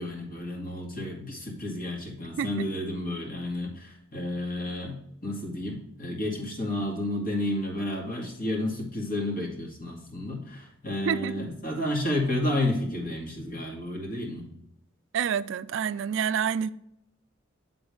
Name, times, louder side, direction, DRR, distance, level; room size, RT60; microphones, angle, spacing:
voice 1, 0.0-14.5, left 1 dB, 45° left, 2.1 m, -31 dB
voice 2, 11.0-11.5 15.1-16.7, right 7 dB, 65° right, 0.3 m, -28 dB
9.8 x 3.9 x 4.8 m
head